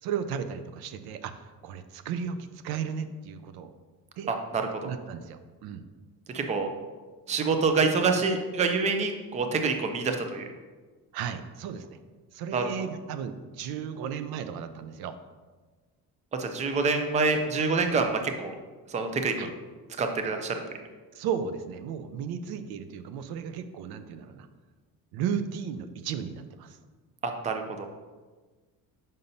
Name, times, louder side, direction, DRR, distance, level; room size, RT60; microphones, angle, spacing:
voice 1, 0.0-3.7 4.2-4.3 4.8-5.9 11.1-12.0 12.3-15.1 19.4-19.5 21.1-24.5 25.1-26.8, right 7 dB, 85° right, 10 dB, 0.5 m, -35 dB
voice 2, 4.3-4.9 6.3-6.7 7.3-10.5 12.5-12.7 16.4-18.5 18.9-19.3 20.0-20.6 27.2-27.9, right 4 dB, 20° right, 5 dB, 0.4 m, -26 dB
7.0 x 5.3 x 2.6 m, 1.3 s
cardioid pair, 155°, 36 cm